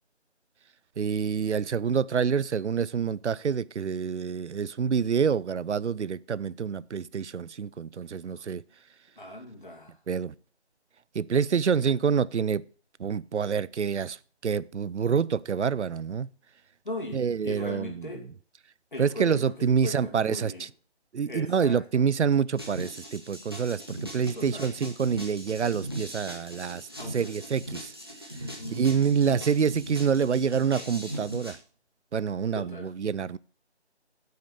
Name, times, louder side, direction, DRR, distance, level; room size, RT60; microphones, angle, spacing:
voice 1, 1.0-8.6 10.1-10.3 11.1-12.6 13.0-14.2 14.4-16.3 17.1-18.1 19.0-20.7 21.1-27.9 28.7-31.6 32.1-33.4, right 6 dB, 85° right, 0.6 m, -27 dB
voice 2, 9.2-10.0 16.8-18.2 18.9-20.7 21.2-22.0 24.3-24.7 27.0-27.3 28.3-28.9 32.5-32.9, left 1 dB, 45° left, 2.5 m, -39 dB
sound 1, 22.5-31.5, equal, 20° right, 1.2 m, -39 dB
8.8 x 6.6 x 6.8 m
figure-of-eight pair, 180°, 34 cm